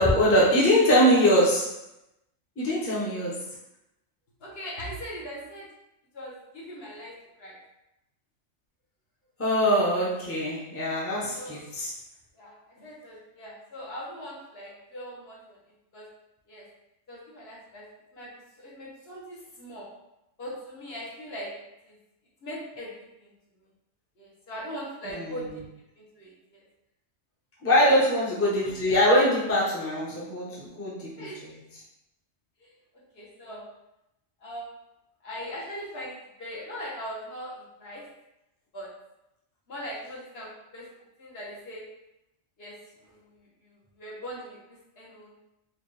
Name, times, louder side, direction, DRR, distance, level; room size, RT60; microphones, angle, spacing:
voice 1, 0.0-1.7 2.6-3.4 9.4-11.9 25.0-25.3 27.6-31.3, equal, 15° left, -6 dB, 0.7 m, -23 dB
voice 2, 4.4-5.7 6.1-7.6 11.4-11.6 12.3-15.6 15.9-16.1 16.5-16.7 17.1-17.8 18.1-18.3 18.6-19.9 20.4-21.5 21.8-22.0 22.4-23.3 24.2-25.6 26.0-26.7 27.8-28.0 31.2-31.4 32.6-32.7 33.1-33.7 34.4-34.7 35.2-38.0 38.7-38.9 39.7-40.9 41.2-41.8 42.6-42.8 43.0-45.3, equal, 55° left, -5 dB, 1.2 m, -40 dB
4.4 x 2.4 x 3.2 m, 0.88 s
omnidirectional pair, 1.3 m